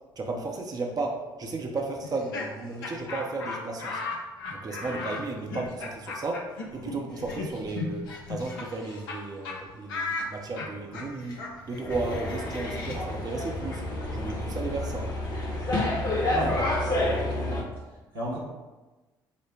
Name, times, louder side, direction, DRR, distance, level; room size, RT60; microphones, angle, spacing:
voice 1, 0.2-4.0 4.5-13.8 14.1-15.1, right 3 dB, 35° right, 1 dB, 0.7 m, -34 dB
Laughter, 2.0-9.2 9.4-9.6 9.9-15.6, left 3 dB, 75° left, 0.7 m, -37 dB
sound 1, 11.9-17.6, left 1 dB, 35° left, 1.2 m, -29 dB
voice 2, 16.3-17.7 18.1-18.4, right 1 dB, 85° right, -6 dB, 1.1 m, -34 dB
5.1 x 2.1 x 4.6 m, 1.2 s
figure-of-eight pair, 50°, 12 cm